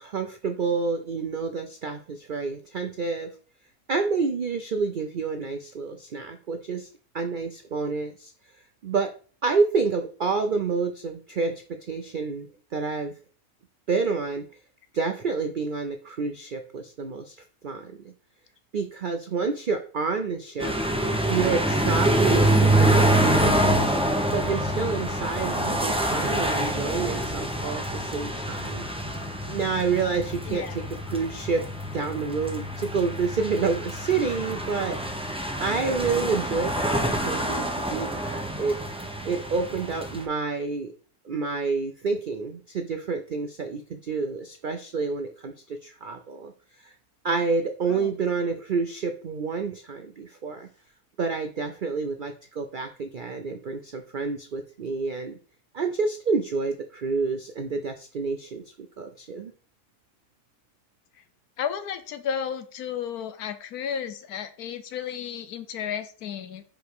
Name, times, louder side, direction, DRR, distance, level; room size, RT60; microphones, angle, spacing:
voice 1, 0.0-3.3 3.9-6.9 7.1-8.3 8.8-9.1 9.4-12.5 12.7-13.1 13.9-14.5 14.9-17.4 17.6-18.1 18.7-20.8 21.3-23.9 24.3-28.9 29.5-31.6 31.9-35.3 35.6-38.8 39.2-40.9 41.2-46.5 46.8-46.9 47.2-50.7 51.2-55.4 55.7-59.5, right 4 dB, 80° right, 6 dB, 0.4 m, -28 dB
sound 1, 20.6-40.2, right 1 dB, 10° right, 0.4 m, -26 dB
voice 2, 30.5-30.8 47.9-48.1 61.6-66.6, left 8 dB, 75° left, 11 dB, 1.2 m, -33 dB
5.1 x 5.0 x 4.7 m, 0.41 s
omnidirectional pair, 1.7 m